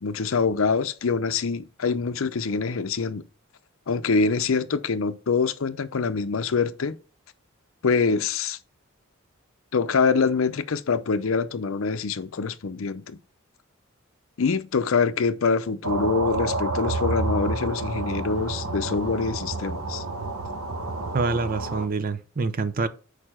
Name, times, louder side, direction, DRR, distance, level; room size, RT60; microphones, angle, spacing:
voice 1, 0.0-3.2 3.9-7.0 7.8-8.6 9.7-13.2 14.4-20.0, left 4 dB, 70° left, 0.6 m, -25 dB
sound 1, 15.8-21.9, right 2 dB, 85° right, 1.0 m, -29 dB
voice 2, 21.1-22.9, right 3 dB, 40° right, 0.5 m, -26 dB
6.6 x 4.9 x 4.4 m
head